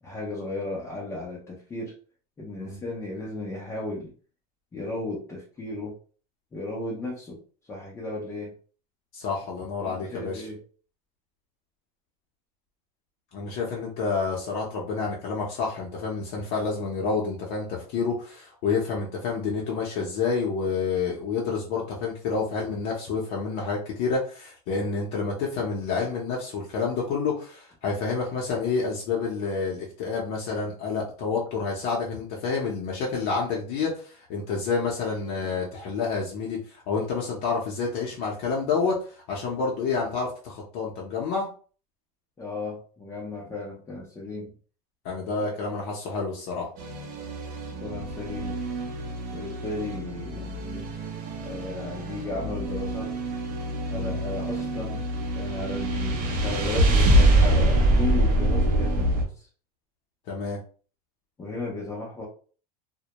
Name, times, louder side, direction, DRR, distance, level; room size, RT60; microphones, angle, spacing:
voice 1, 0.0-1.9 2.4-4.1 4.7-6.0 6.5-7.4 7.7-8.5 9.8-10.6 42.4-44.5 45.4-45.5 47.8-48.6 49.3-50.9 51.4-53.1 53.9-55.1 55.3-59.5 61.4-62.3, left 2 dB, 15° left, -3 dB, 0.5 m, -35 dB
voice 2, 9.1-10.4 13.3-41.5 45.0-46.7 53.9-54.2 60.3-60.6, left 4 dB, 50° left, -2 dB, 0.7 m, -29 dB
sound 1, 46.8-59.2, right 1 dB, 40° right, 0.6 m, -25 dB
2.1 x 2.0 x 2.8 m, 0.40 s
supercardioid pair, 145°, 21 cm